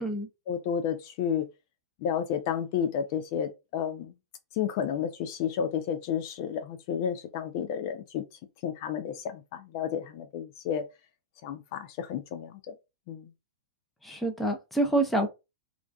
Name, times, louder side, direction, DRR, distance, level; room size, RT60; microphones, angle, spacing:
voice 1, 0.5-1.5 2.0-4.1 4.5-8.2 8.6-10.8 11.4-12.8 13.1-13.3, left 8 dB, 50° left, 0.4 m, -31 dB
voice 2, 14.0-15.3, right 2 dB, 5° left, 0.6 m, -27 dB
2.4 x 2.3 x 2.3 m
hypercardioid pair, 115°, 2 cm